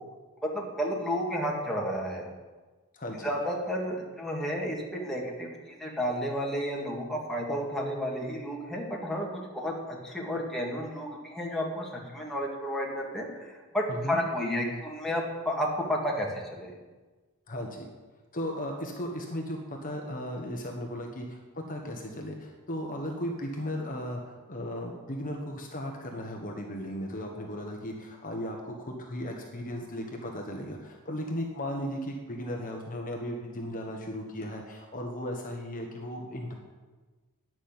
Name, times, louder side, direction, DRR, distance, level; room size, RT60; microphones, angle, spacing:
voice 1, 0.4-2.2 3.2-5.5 5.8-16.7, equal, ahead, -3 dB, 2.0 m, -32 dB
voice 2, 2.9-3.3 13.9-14.2 17.5-17.9 18.3-36.6, equal, 40° left, 1 dB, 1.2 m, -36 dB
10.0 x 6.2 x 8.8 m, 1.3 s
head